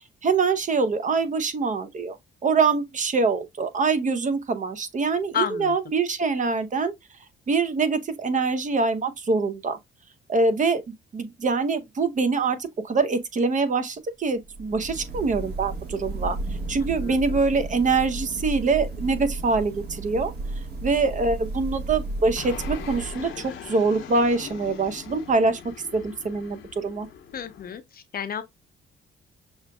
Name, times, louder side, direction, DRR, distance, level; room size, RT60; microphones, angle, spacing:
voice 1, 0.2-2.2 2.4-6.9 7.5-9.8 10.3-10.8 11.1-16.4 16.7-20.3 20.8-25.6 25.9-27.1, right 4 dB, 40° right, 0.7 m, -24 dB
voice 2, 5.3-5.8 17.0-17.4 27.3-28.4, left 7 dB, 50° left, 0.6 m, -31 dB
sound 1, 14.4-23.6, right 2 dB, 55° right, 1.3 m, -33 dB
Fixed-wing aircraft airplane, 22.4-27.8, left 7 dB, 80° left, 1.0 m, -41 dB
6.2 x 2.5 x 2.2 m
cardioid pair, 90°, 20 cm